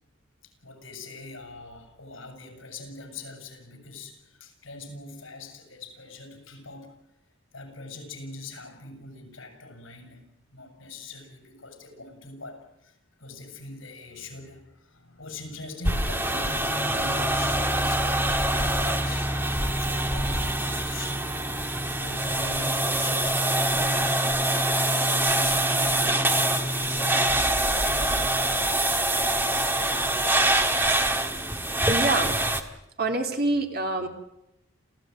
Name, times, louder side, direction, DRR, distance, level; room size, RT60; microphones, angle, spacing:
voice 1, 0.4-6.9 7.5-10.3 10.5-21.3 22.0-24.2 24.8-28.4, left 2 dB, 75° left, 5 dB, 6.9 m, -43 dB
sound 1, 15.8-32.6, right 1 dB, 10° right, 1.7 m, -24 dB
voice 2, 31.9-32.5 33.0-34.1, right 2 dB, 50° right, 4 dB, 3.0 m, -26 dB
28.5 x 16.0 x 9.5 m, 0.87 s
head